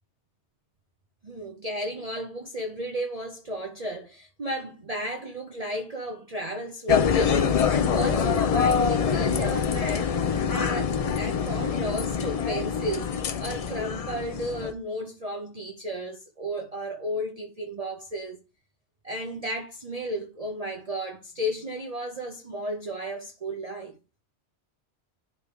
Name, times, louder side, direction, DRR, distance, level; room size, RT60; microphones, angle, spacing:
voice 1, 1.2-13.1 13.4-18.4 19.0-23.9, right 1 dB, 35° right, 0.9 m, -34 dB
sound 1, 6.9-14.7, left 6 dB, 50° left, 0.4 m, -25 dB
10.0 x 3.4 x 4.6 m
omnidirectional pair, 1.2 m